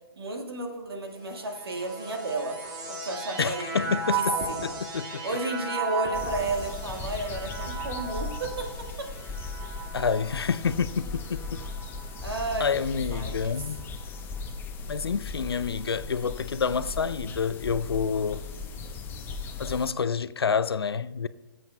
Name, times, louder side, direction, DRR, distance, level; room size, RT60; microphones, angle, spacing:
voice 1, 0.2-2.6 2.9-4.7 5.2-9.1 12.2-13.7, right 2 dB, 80° right, 1.6 m, -33 dB
sound 1, 1.2-12.7 13.4-14.2, right 3 dB, 45° right, 1.9 m, -36 dB
voice 2, 3.4-4.4 4.6-5.1 9.9-11.6 12.6-13.8 14.9-18.4 19.6-21.3, left 6 dB, 90° left, 0.4 m, -28 dB
sound 2, 6.1-19.9, left 4 dB, 15° left, 0.7 m, -37 dB
18.5 x 7.7 x 2.2 m
hypercardioid pair, 130°, 13 cm